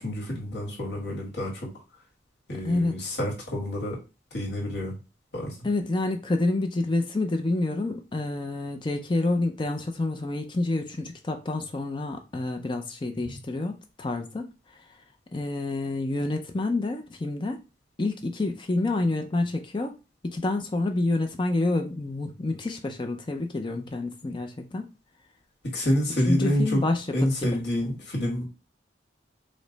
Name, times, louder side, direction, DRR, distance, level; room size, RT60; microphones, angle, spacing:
voice 1, 0.0-1.7 2.5-4.0 4.3-4.9 5.3-5.5 25.6-26.8 27.1-28.4, equal, 65° left, 1.7 m, -28 dB
voice 2, 2.6-3.1 5.6-14.5 14.7-14.8 15.3-17.6 18.0-20.0 20.2-24.9 26.2-27.3, left 2 dB, 25° left, 0.4 m, -28 dB
5.0 x 2.1 x 3.9 m
head